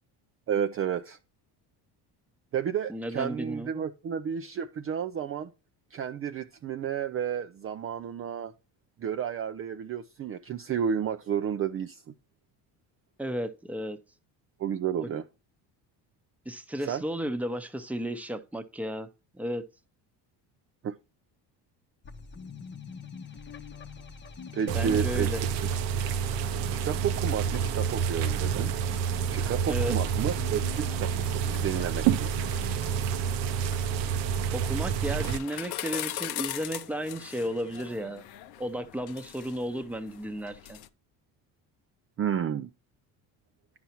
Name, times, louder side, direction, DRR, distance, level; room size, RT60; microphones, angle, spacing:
voice 1, 0.5-1.2 2.5-5.5 5.9-8.5 9.0-12.1 14.6-15.3 16.8-17.0 20.8-21.0 24.5-25.3 26.7-28.7 29.3-32.3 42.2-42.7, right 8 dB, 30° right, 0.5 m, -31 dB
voice 2, 2.9-3.8 13.2-14.0 15.0-15.1 16.4-19.1 19.3-19.6 24.7-25.4 29.7-30.0 34.5-38.2 38.6-40.8, equal, 5° right, 0.8 m, -33 dB
sound 1, 22.0-34.5, left 5 dB, 25° left, 0.8 m, -45 dB
sound 2, 24.7-35.4, right 8 dB, 75° right, 0.8 m, -28 dB
sound 3, 30.2-40.9, left 12 dB, 65° left, 0.7 m, -42 dB
10.5 x 5.6 x 2.9 m
cardioid pair, 100°, 43 cm